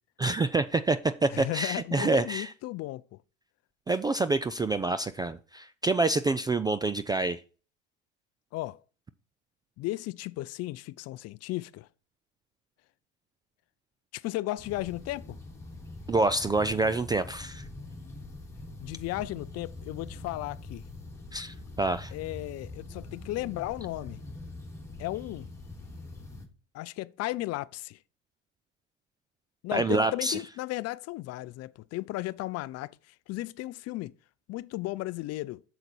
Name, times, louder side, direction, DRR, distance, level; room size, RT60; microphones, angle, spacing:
voice 1, 0.2-2.5 3.9-7.4 16.1-17.6 21.3-22.1 29.7-30.4, right 3 dB, 10° right, 0.3 m, -27 dB
voice 2, 1.3-3.2 8.5-8.8 9.8-11.9 14.1-15.4 18.8-20.8 22.1-24.2 25.0-25.5 26.7-28.0 29.6-34.1 34.5-35.6, left 17 dB, 45° left, 0.5 m, -35 dB
sound 1, 14.6-26.5, left 2 dB, 5° left, 2.4 m, -44 dB
8.1 x 6.8 x 4.5 m
supercardioid pair, 100°, 36 cm